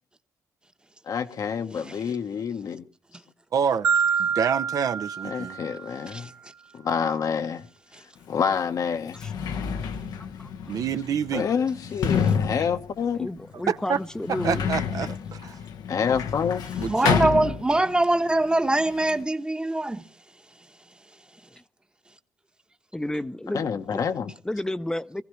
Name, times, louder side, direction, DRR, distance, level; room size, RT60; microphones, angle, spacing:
voice 1, 1.1-2.8 5.2-6.3 6.7-7.7 8.3-9.2 11.3-13.3 15.9-16.7 23.5-24.3, left 7 dB, 65° left, 1.1 m, -27 dB
voice 2, 3.5-3.8 4.3-5.6 10.7-11.5 13.5-14.0 14.4-15.6 16.8-17.3, right 7 dB, 65° right, 0.7 m, -27 dB
Marimba xylophone, 3.8-6.0, right 6 dB, 40° right, 1.1 m, -26 dB
Sliding door, 8.3-8.4 9.0-18.1 18.4-19.2, left 7 dB, 90° left, 1.1 m, -29 dB
voice 3, 9.2-9.6 10.4-10.5 11.4-11.5 13.2-14.6 22.9-24.1 24.4-25.2, left 1 dB, 10° left, 0.7 m, -32 dB
voice 4, 16.9-20.1, right 2 dB, 15° right, 1.0 m, -23 dB
22.0 x 15.0 x 3.1 m
cardioid pair, 90°, 7 cm